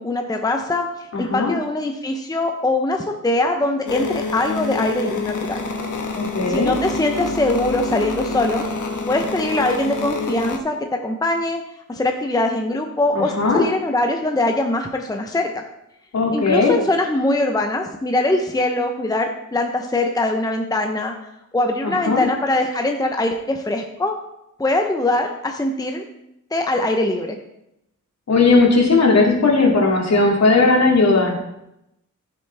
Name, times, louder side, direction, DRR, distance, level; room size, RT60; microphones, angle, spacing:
voice 1, 0.0-5.6 6.5-8.6 9.1-11.6 11.9-15.6 16.3-21.1 21.5-24.1 24.6-26.0 26.5-27.4, left 2 dB, 10° left, 4 dB, 0.7 m, -22 dB
voice 2, 1.1-1.5 6.1-6.7 13.1-13.6 16.1-16.8 21.8-22.2 28.3-31.3, left 3 dB, 60° left, 0 dB, 2.3 m, -17 dB
sound 1, 3.9-10.6, left 3 dB, 80° left, 1.2 m, -27 dB
15.0 x 6.9 x 3.4 m, 0.85 s
wide cardioid pair, 155°, 30 cm